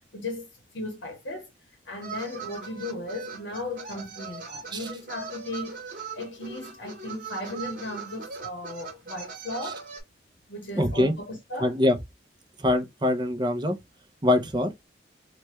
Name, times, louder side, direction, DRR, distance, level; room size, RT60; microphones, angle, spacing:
voice 1, 0.1-0.5 0.7-1.5 1.8-9.8 10.5-11.7, left 1 dB, 80° left, 0.9 m, -36 dB
sound 1, 2.0-10.0, right 5 dB, 45° right, 1.2 m, -40 dB
voice 2, 10.7-11.1 11.6-11.9 12.6-13.8 14.2-14.7, left 1 dB, 25° right, 0.5 m, -23 dB
3.2 x 2.2 x 3.0 m
head